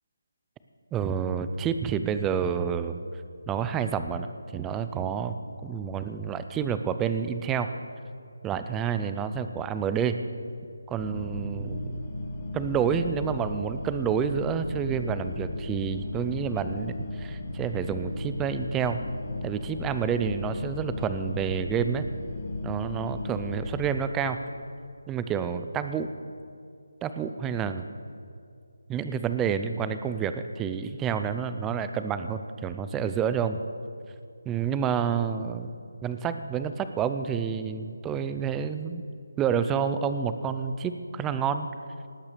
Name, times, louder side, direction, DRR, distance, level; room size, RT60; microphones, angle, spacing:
voice 1, 0.9-3.0 3.5-5.4 5.6-7.7 8.4-10.2 10.9-12.0 12.5-19.0 19.4-22.1 22.6-24.4 25.1-26.1 27.0-27.8 28.9-33.6 34.5-35.7 36.0-39.0 39.4-41.7, right 7 dB, 5° right, 10 dB, 0.4 m, -29 dB
sound 1, 11.0-23.9, left 2 dB, 25° left, 1.5 m, -35 dB
18.5 x 8.9 x 6.7 m, 2.4 s
figure-of-eight pair, 175°, 0 cm